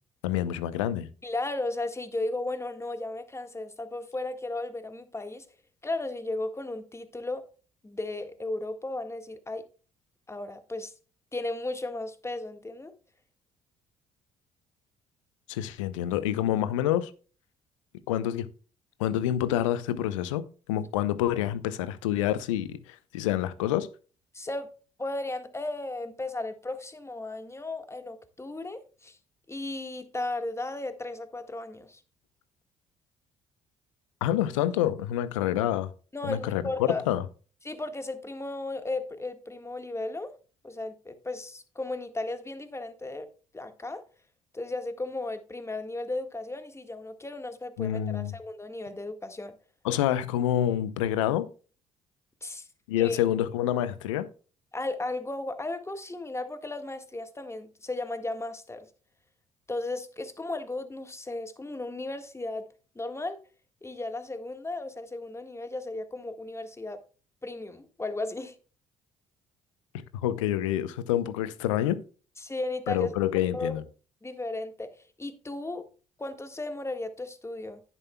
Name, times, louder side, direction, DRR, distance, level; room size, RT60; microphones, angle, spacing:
voice 1, 0.2-1.1 15.5-17.1 18.1-18.5 19.0-20.4 20.7-23.9 34.2-35.9 36.2-37.2 47.8-48.3 49.8-51.5 52.9-54.3 70.1-72.0 72.9-73.8, left 12 dB, 80° left, 0.8 m, -27 dB
voice 2, 1.2-5.5 5.8-7.5 7.8-9.6 10.3-10.9 11.3-12.9 24.3-24.7 25.0-29.2 29.5-32.0 36.1-37.1 37.6-40.3 40.6-43.3 43.5-44.0 44.5-49.6 52.4-52.7 53.0-53.2 54.7-58.9 59.7-62.7 63.0-63.4 63.8-67.0 67.4-68.6 72.4-73.8 74.2-75.9 76.2-77.8, left 2 dB, 15° left, 1.7 m, -35 dB
11.0 x 10.0 x 2.3 m
hypercardioid pair, 50°, 16 cm